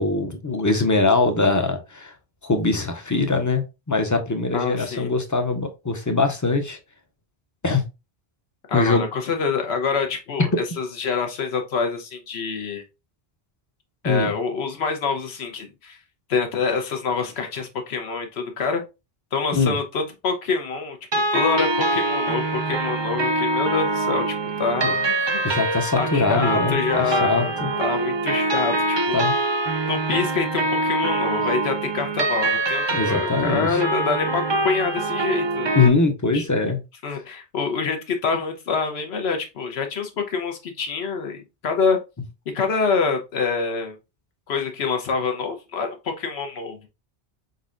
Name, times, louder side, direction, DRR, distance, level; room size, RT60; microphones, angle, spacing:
voice 1, 0.0-2.1 2.4-6.8 7.6-7.8 8.7-9.0 14.0-14.3 19.5-19.7 24.8-24.9 25.4-27.7 29.1-29.3 32.9-33.8 35.8-36.8, left 3 dB, 25° left, 6 dB, 0.4 m, -22 dB
voice 2, 4.5-5.1 8.7-10.5 10.8-12.8 14.0-16.0 16.3-18.8 19.3-21.0 21.3-25.7 26.0-29.2 29.9-35.7 36.3-36.4 37.0-42.0 42.5-44.0 44.5-46.9, left 5 dB, 85° left, 5 dB, 1.1 m, -26 dB
sound 1, 21.1-35.9, right 2 dB, 35° right, 0.4 m, -24 dB
4.5 x 3.9 x 2.5 m, 0.26 s
omnidirectional pair, 1.0 m